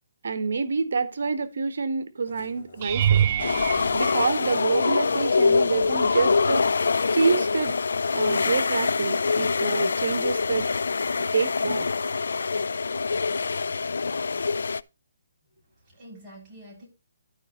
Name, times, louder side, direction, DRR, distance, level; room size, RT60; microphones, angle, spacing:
voice 1, 0.2-3.3 3.9-6.7 7.1-7.7 8.1-10.7 11.3-11.9, right 4 dB, 70° right, 1.3 m, -27 dB
Musical instrument, 2.2-7.3, left 4 dB, 45° left, 3.5 m, -49 dB
sound 1, 2.8-5.1 5.8-6.2 6.6-6.7 11.1-11.2, right 9 dB, 35° right, 0.5 m, -26 dB
sound 2, 3.4-14.8, left 4 dB, 80° left, 0.4 m, -24 dB
voice 2, 15.5-16.9, right 1 dB, 15° right, 6.9 m, -47 dB
12.0 x 5.3 x 4.3 m
hypercardioid pair, 165°, 0 cm